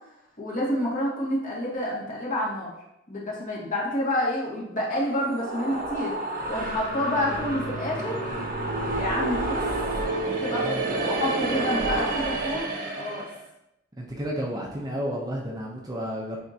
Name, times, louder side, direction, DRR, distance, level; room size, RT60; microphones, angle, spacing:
voice 1, 0.4-2.7 3.1-6.1 6.5-8.2 8.9-9.6 10.3-13.2, left 1 dB, 45° left, -6 dB, 2.1 m, -28 dB
sound 1, 5.0-13.4, right 2 dB, 45° right, 0.9 m, -29 dB
voice 2, 10.5-10.8 14.0-16.4, equal, 20° right, -2 dB, 0.8 m, -32 dB
9.2 x 3.6 x 2.9 m, 0.84 s
head